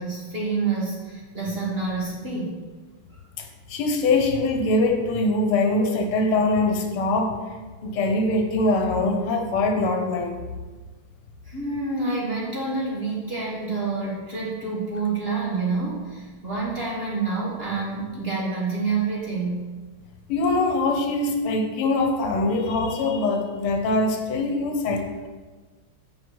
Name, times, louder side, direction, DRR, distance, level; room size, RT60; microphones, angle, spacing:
voice 1, 0.0-2.6 3.1-3.2 11.4-19.7, right 4 dB, 30° right, -5 dB, 1.6 m, -28 dB
voice 2, 3.4-7.4 7.8-10.4 20.3-25.3, left 2 dB, 80° left, 4 dB, 1.8 m, -23 dB
8.1 x 5.5 x 4.6 m, 1.4 s
omnidirectional pair, 2.4 m